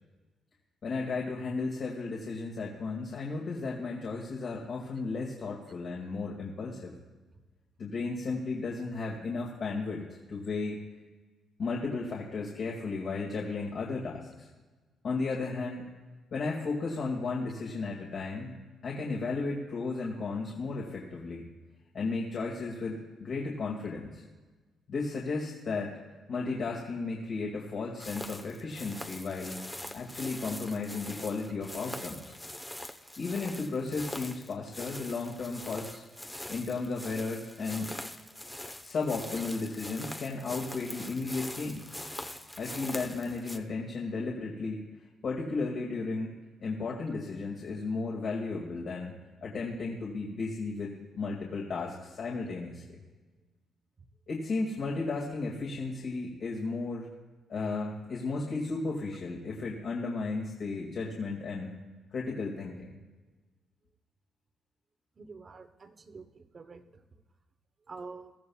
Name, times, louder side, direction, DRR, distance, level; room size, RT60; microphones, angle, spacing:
voice 1, 0.8-6.9 7.8-10.8 11.6-14.5 15.0-15.9 16.3-21.4 21.9-24.2 24.9-26.0 26.3-29.6 29.9-32.3 33.2-36.0 36.5-37.9 38.8-41.9 42.6-44.8 45.2-46.3 46.6-49.1 49.4-53.0 54.3-57.1 57.5-61.7 62.1-63.0, left 3 dB, 55° left, -2 dB, 2.1 m, -34 dB
sound 1, 28.0-43.6, left 1 dB, 10° left, 0.9 m, -43 dB
voice 2, 65.2-67.0 67.9-68.3, right 4 dB, 40° right, 9 dB, 1.0 m, -47 dB
21.5 x 14.0 x 2.4 m, 1.3 s
cardioid pair, 90°, 0 cm